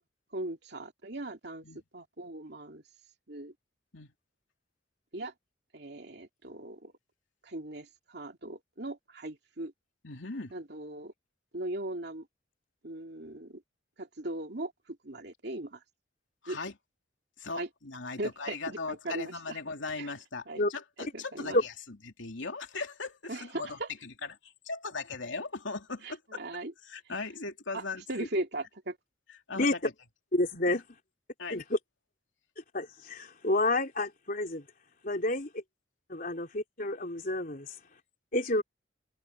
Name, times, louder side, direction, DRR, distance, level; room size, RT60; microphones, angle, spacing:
voice 1, 0.3-1.6 1.9-2.8 3.3-3.5 5.1-5.3 5.7-6.9 7.4-9.7 10.5-11.1 11.5-12.3 12.8-13.6 14.0-15.8 16.5-16.6 17.6-17.7 18.2-19.6 20.0-20.1 20.5-20.6 21.0-21.6 23.3-23.9 26.0-26.7 27.7-29.0, right 1 dB, 60° right, 2.9 m, -38 dB
voice 2, 10.0-10.5 16.4-16.7 17.4-21.7 22.2-23.8 24.0-24.3 24.7-26.4 26.9-28.3 29.5-29.9 31.4-31.6, left 3 dB, 90° left, 2.9 m, -38 dB
voice 3, 30.3-30.8 31.5-31.8 32.7-34.6 35.0-35.5 36.1-37.7 38.3-38.6, left 2 dB, 50° left, 3.4 m, -29 dB
head